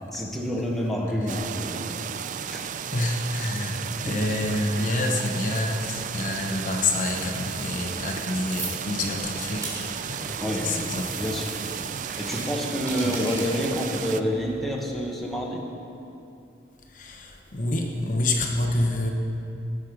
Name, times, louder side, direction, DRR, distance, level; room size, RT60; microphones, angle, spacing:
voice 1, 0.1-2.0 2.5-2.7 3.7-4.2 10.4-10.8 11.1-11.6 12.2-15.6, equal, ahead, -2 dB, 1.2 m, -28 dB
sound 1, 1.3-14.2, right 8 dB, 45° right, 0.3 m, -34 dB
voice 2, 2.9-9.7 10.1-10.4 10.6-11.1 13.0-13.3 16.9-19.1, left 2 dB, 45° left, 1 dB, 0.9 m, -27 dB
sound 2, 6.1-15.3, right 2 dB, 20° right, 3.2 m, -41 dB
18.5 x 6.4 x 5.1 m, 2.7 s
head